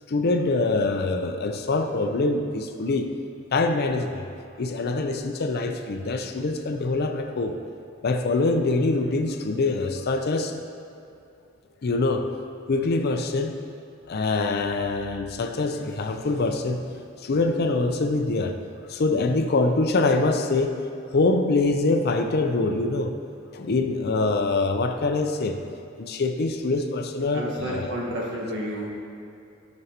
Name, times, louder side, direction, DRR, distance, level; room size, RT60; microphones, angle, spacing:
voice 1, 0.1-3.1 3.5-4.2 4.6-7.6 8.0-10.6 11.8-12.4 12.7-13.6 14.1-16.8 17.2-18.6 18.9-20.8 21.1-23.1 23.5-25.6 26.0-27.9, left 3 dB, 50° left, 6 dB, 0.5 m, -24 dB
voice 2, 27.3-28.9, equal, 65° right, -4 dB, 1.5 m, -30 dB
11.0 x 5.2 x 2.9 m, 2.6 s
head